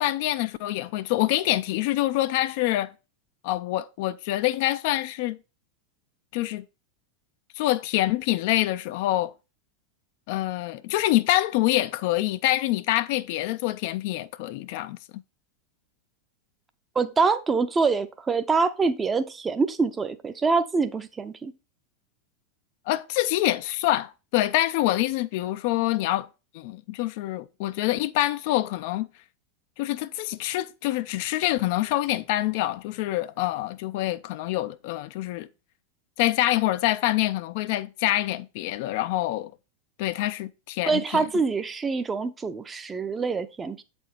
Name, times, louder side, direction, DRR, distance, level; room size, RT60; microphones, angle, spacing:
voice 1, 0.0-2.9 3.4-5.4 6.3-6.6 7.6-9.3 10.3-15.2 22.9-26.3 26.5-29.1 29.8-35.5 36.2-39.5 40.0-41.3, left 15 dB, 50° left, 0.4 m, -26 dB
voice 2, 17.0-21.5 40.9-43.8, right 4 dB, 15° right, 0.7 m, -25 dB
8.2 x 4.3 x 4.5 m
figure-of-eight pair, 90°, 0 cm